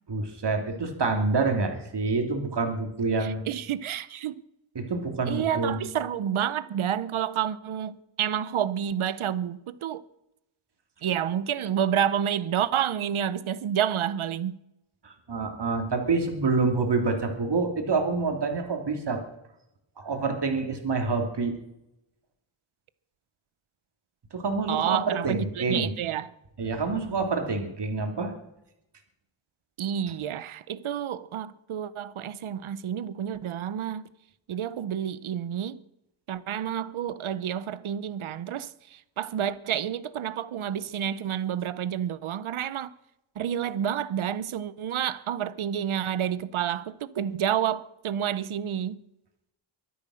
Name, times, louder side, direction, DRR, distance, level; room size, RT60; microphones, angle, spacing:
voice 1, 0.1-3.4 4.7-5.8 15.0-19.2 20.0-21.5 24.3-25.9 26.6-28.3, right 3 dB, 55° right, 3.2 m, -27 dB
voice 2, 3.2-4.4 5.3-10.0 11.0-14.6 24.7-26.3 29.8-34.0 34.5-35.8 36.3-42.9 43.4-49.0, right 9 dB, 75° right, 0.9 m, -29 dB
23.5 x 8.2 x 6.4 m
wide cardioid pair, 90°, 49 cm